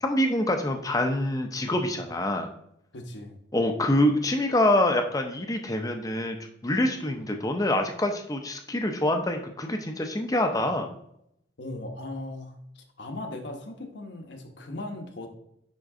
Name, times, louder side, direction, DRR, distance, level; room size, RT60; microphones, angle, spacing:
voice 1, 0.0-2.5 3.5-6.4 6.6-10.9, left 1 dB, 20° left, 5 dB, 0.7 m, -25 dB
voice 2, 2.9-3.4 11.6-15.3, left 1 dB, 70° left, 4 dB, 1.1 m, -38 dB
10.0 x 3.8 x 3.7 m, 0.75 s
head